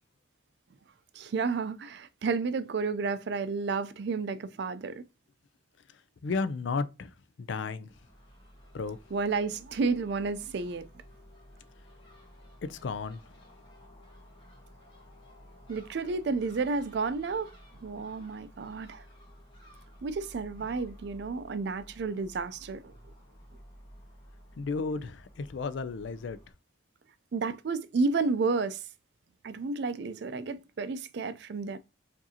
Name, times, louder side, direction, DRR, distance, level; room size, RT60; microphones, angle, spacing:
voice 1, 1.1-5.0 9.1-10.8 15.7-17.5 17.8-19.0 20.0-22.9 27.3-28.8 29.4-31.8, right 4 dB, 55° right, 0.4 m, -31 dB
voice 2, 6.2-7.9 8.7-9.0 12.6-13.3 24.6-26.4, left 4 dB, 70° left, 0.4 m, -33 dB
Crow / Gull seagull, 7.9-26.5, equal, 25° left, 1.1 m, -54 dB
4.8 x 2.6 x 2.7 m
head